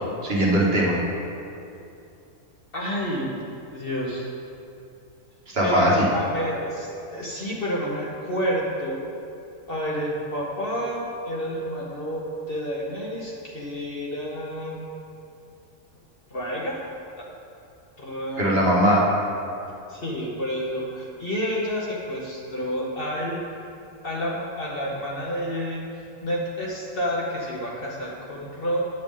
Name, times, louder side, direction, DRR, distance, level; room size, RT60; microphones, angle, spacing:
voice 1, 0.2-1.0 5.5-6.1 18.4-19.1, equal, 45° right, -4 dB, 1.5 m, -20 dB
voice 2, 2.7-3.3 3.7-4.2 5.6-9.0 9.7-14.9 16.3-16.8 18.0-18.6 19.9-23.4 24.0-25.9 26.2-28.9, equal, 45° left, -4 dB, 1.0 m, -29 dB
9.1 x 7.6 x 3.7 m, 2.6 s
omnidirectional pair, 1.5 m